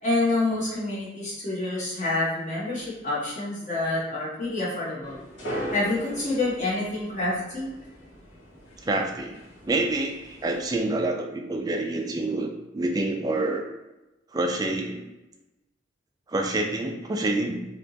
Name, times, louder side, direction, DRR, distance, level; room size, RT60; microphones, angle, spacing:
voice 1, 0.0-5.2 5.7-7.7, left 2 dB, 40° left, -6 dB, 1.2 m, -27 dB
sound 1, 5.0-10.8, right 1 dB, 80° left, 1.3 m, -39 dB
voice 2, 8.8-9.3 9.6-13.6 14.3-15.0 16.3-17.7, right 2 dB, 20° right, 3 dB, 0.3 m, -27 dB
3.3 x 2.9 x 2.7 m, 1.0 s
head